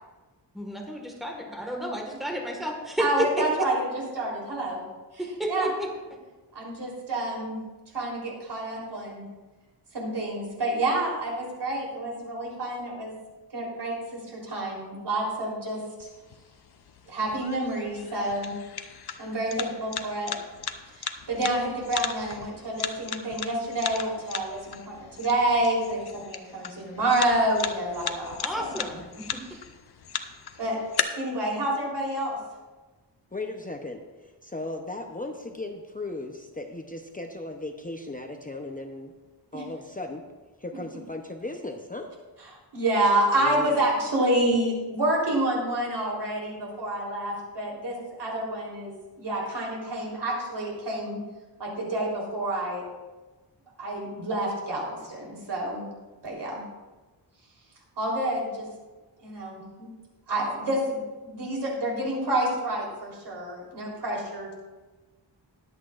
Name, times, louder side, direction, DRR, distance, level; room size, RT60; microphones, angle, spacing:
voice 1, 0.5-3.4 5.2-5.9 28.4-29.0 29.3-29.4, equal, ahead, 0 dB, 1.6 m, -31 dB
voice 2, 3.0-4.8 5.1-5.7 6.5-7.6 7.9-9.3 9.9-13.1 13.5-16.1 17.1-18.5 19.2-20.3 20.9-28.8 29.4-29.6 30.6-30.8 31.1-32.4 39.5-39.6 42.7-51.2 51.6-52.8 53.8-55.8 56.2-56.6 58.0-58.7 59.2-59.9 60.3-64.5, right 1 dB, 65° right, -3 dB, 3.6 m, -28 dB
sound 1, 16.0-31.0, left 8 dB, 60° left, 0.7 m, -37 dB
voice 3, 33.3-39.1 39.5-40.2 40.6-42.1 43.4-43.8, left 2 dB, 20° left, 3 dB, 0.7 m, -36 dB
21.0 x 8.3 x 2.5 m, 1.2 s
wide cardioid pair, 135°, 43 cm